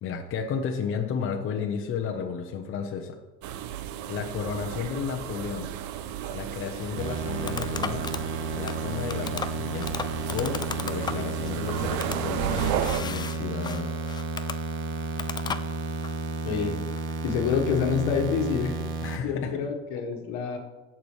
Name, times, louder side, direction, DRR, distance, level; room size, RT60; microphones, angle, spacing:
voice 1, 0.0-3.2 4.1-5.7 6.3-8.1 8.5-9.9 10.3-13.9 19.0-19.6, left 6 dB, 40° left, 3 dB, 1.0 m, -33 dB
sound 1, 3.4-13.0, right 10 dB, 60° right, 0.8 m, -34 dB
sound 2, 6.7-16.2, left 6 dB, 15° left, 0.3 m, -37 dB
sound 3, 7.0-19.2, right 3 dB, 40° right, 1.3 m, -32 dB
voice 2, 16.4-18.8 19.2-20.6, left 6 dB, 70° left, 3 dB, 1.6 m, -27 dB
16.0 x 6.1 x 3.3 m, 1.2 s
supercardioid pair, 115°, 32 cm